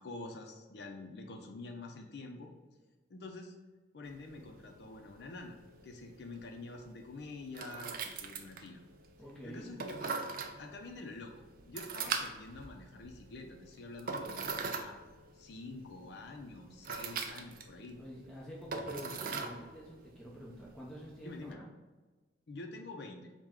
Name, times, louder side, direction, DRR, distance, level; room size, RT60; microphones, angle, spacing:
voice 1, 0.0-2.5 3.1-3.5 3.9-5.6 5.8-8.8 9.4-10.3 10.6-11.3 11.6-15.0 15.3-18.0 21.2-21.6 22.5-23.3, left 2 dB, 65° left, 2 dB, 0.5 m, -47 dB
sound 1, 4.0-21.5, right 4 dB, 50° right, 0.4 m, -43 dB
voice 2, 9.2-9.7 18.0-21.7, equal, 5° left, -6 dB, 0.6 m, -47 dB
4.5 x 2.1 x 3.6 m, 1.3 s
head